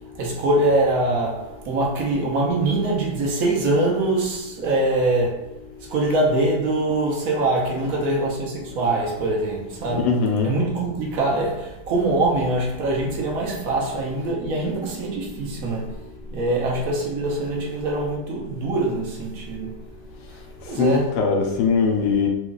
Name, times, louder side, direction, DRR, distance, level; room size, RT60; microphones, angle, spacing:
voice 1, 0.1-5.5 5.8-16.0 16.3-19.8 20.6-21.2, right 2 dB, 60° right, 1.4 m, -23 dB
voice 2, 9.9-10.5 20.6-22.3, left 5 dB, 85° left, 1.2 m, -21 dB
4.6 x 2.4 x 3.9 m
omnidirectional pair, 1.7 m